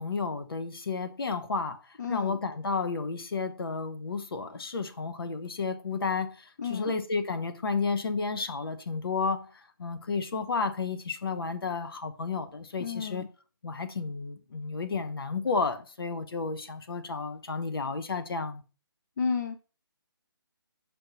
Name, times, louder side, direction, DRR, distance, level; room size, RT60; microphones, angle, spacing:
voice 1, 0.0-1.8 2.1-9.5 9.8-13.2 13.6-18.6, left 4 dB, 70° left, 1.1 m, -32 dB
voice 2, 2.0-2.4 6.6-6.9 12.8-13.3 19.2-19.6, left 5 dB, 50° left, 0.6 m, -32 dB
6.9 x 5.4 x 3.0 m
hypercardioid pair, 165°, 13 cm